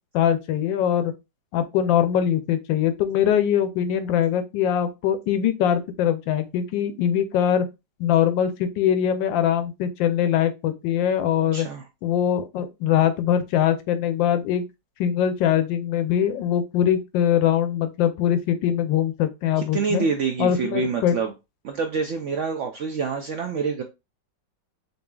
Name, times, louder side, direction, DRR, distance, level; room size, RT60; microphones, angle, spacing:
voice 1, 0.1-1.1 1.5-7.6 8.0-11.7 12.0-14.6 15.0-20.0 20.4-21.2, left 9 dB, 90° left, 1.3 m, -22 dB
voice 2, 11.5-11.8 19.6-21.3 21.6-23.8, right 5 dB, 85° right, 0.6 m, -27 dB
6.6 x 2.7 x 2.3 m
omnidirectional pair, 2.0 m